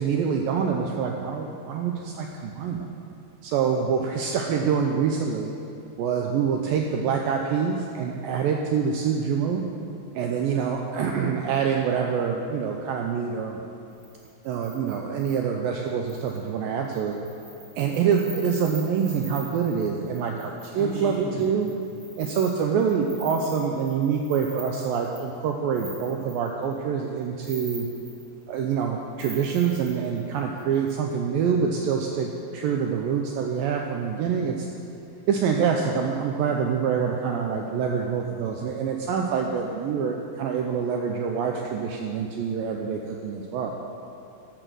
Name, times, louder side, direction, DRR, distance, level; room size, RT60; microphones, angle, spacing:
voice 1, 0.0-2.9 3.4-5.5 6.0-9.6 10.2-13.6 14.4-17.2 17.8-21.7 22.2-27.9 28.5-34.7 35.3-43.7, right 6 dB, 85° right, 2 dB, 2.0 m, -26 dB
sound 1, 14.0-15.4 16.1-16.5 16.8-26.7 27.2-28.8 29.2-30.9, equal, 20° right, 2.9 m, -41 dB
13.5 x 6.0 x 6.2 m, 2.6 s
omnidirectional pair, 4.7 m